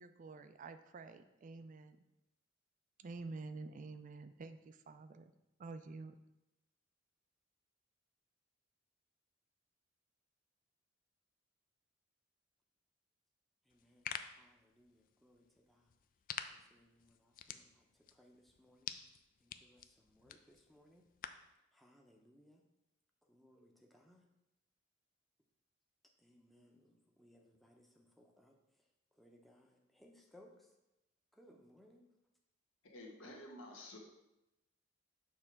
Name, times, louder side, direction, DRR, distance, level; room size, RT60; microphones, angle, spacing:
voice 1, 0.0-2.1 3.0-5.3 5.6-6.2, right 3 dB, 40° right, 10 dB, 0.3 m, -49 dB
sound 1, 13.7-21.5, left 8 dB, 45° left, 0.3 m, -50 dB
voice 2, 13.7-15.9 16.5-18.9 19.4-21.0 21.7-22.6 23.3-24.2 26.2-28.6 29.2-30.7 31.3-32.1, equal, ahead, 0 dB, 0.7 m, -66 dB
voice 3, 32.8-34.0, left 1 dB, 85° left, 0 dB, 1.3 m, -51 dB
6.6 x 3.2 x 5.9 m, 0.92 s
head